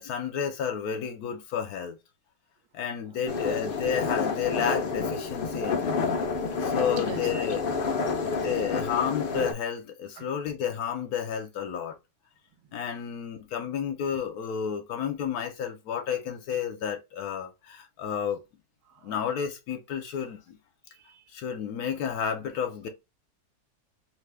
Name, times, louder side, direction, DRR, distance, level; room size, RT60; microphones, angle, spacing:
voice 1, 0.0-2.0 2.7-5.9 6.6-7.7 8.3-12.0 12.7-18.4 19.0-20.6 21.3-22.9, left 8 dB, 75° left, 1.1 m, -31 dB
voice 2, 3.0-3.7 6.2-6.6 7.0-7.3 7.9-8.7 10.2-10.3 18.8-19.1 20.9-21.2, right 6 dB, 75° right, 1.1 m, -45 dB
sound 1, 3.3-9.5, left 4 dB, 90° left, 0.4 m, -29 dB
3.0 x 2.1 x 3.2 m
omnidirectional pair, 1.7 m